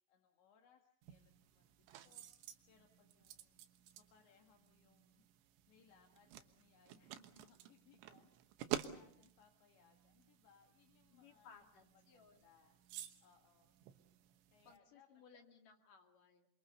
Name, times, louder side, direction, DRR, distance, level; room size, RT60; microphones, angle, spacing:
voice 1, 0.1-2.2 2.7-3.6 4.1-5.2 5.7-11.6 11.9-12.8 13.2-13.8 14.5-15.1 15.4-15.6, left 7 dB, 80° left, 3 dB, 4.2 m, -70 dB
sound 1, 1.0-14.8, right 12 dB, 85° right, 3.6 m, -51 dB
voice 2, 11.1-12.5 14.6-16.5, left 6 dB, 50° left, 4 dB, 3.8 m, -63 dB
28.5 x 24.0 x 6.7 m, 0.67 s
omnidirectional pair, 5.1 m